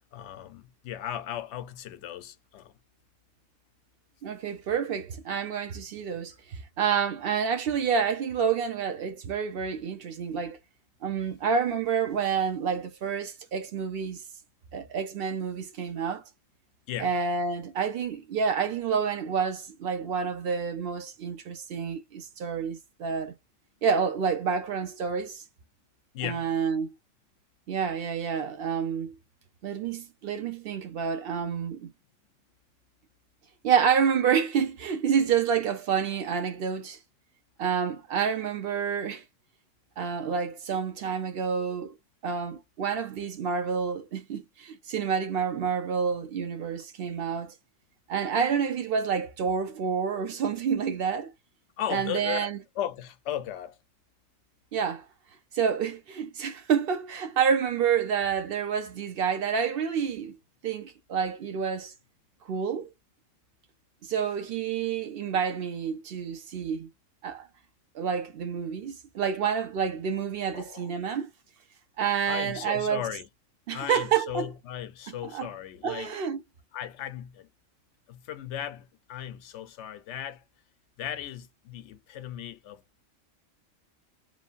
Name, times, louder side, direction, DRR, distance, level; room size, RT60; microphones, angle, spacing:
voice 1, 0.1-2.7 16.9-17.1 26.1-26.5 51.8-53.8 70.5-70.9 72.3-73.3 73.7-76.2 76.7-77.5 78.1-80.4 81.0-82.8, left 10 dB, 70° left, 0.8 m, -36 dB
voice 2, 4.2-10.6 11.0-14.2 14.7-16.2 17.0-23.3 23.8-25.4 26.2-26.9 27.7-29.2 29.6-31.9 33.6-37.0 37.6-39.2 40.0-41.9 42.2-47.5 48.1-51.3 51.9-52.6 54.7-55.1 55.5-60.4 60.6-61.9 62.5-62.9 64.0-66.9 67.2-67.5 67.9-71.3 72.0-73.0 73.7-74.5 75.1-75.5 75.8-76.4, right 7 dB, 55° right, 0.8 m, -28 dB
3.1 x 2.2 x 2.5 m
omnidirectional pair, 1.3 m